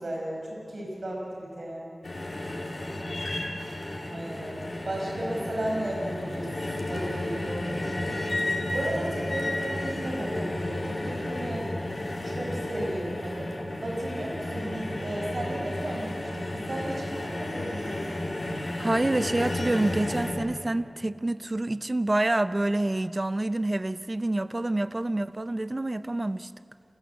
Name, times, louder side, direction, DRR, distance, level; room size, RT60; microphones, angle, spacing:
voice 1, 0.0-2.0 4.1-11.7 12.2-13.5 13.8-18.1, right 1 dB, 75° right, -2 dB, 5.3 m, -35 dB
sound 1, 2.0-20.3, left 1 dB, 65° left, 4.3 m, -32 dB
voice 2, 18.8-26.5, right 2 dB, 40° right, 13 dB, 0.6 m, -27 dB
29.0 x 15.5 x 8.3 m, 2.5 s
wide cardioid pair, 40°, 0 cm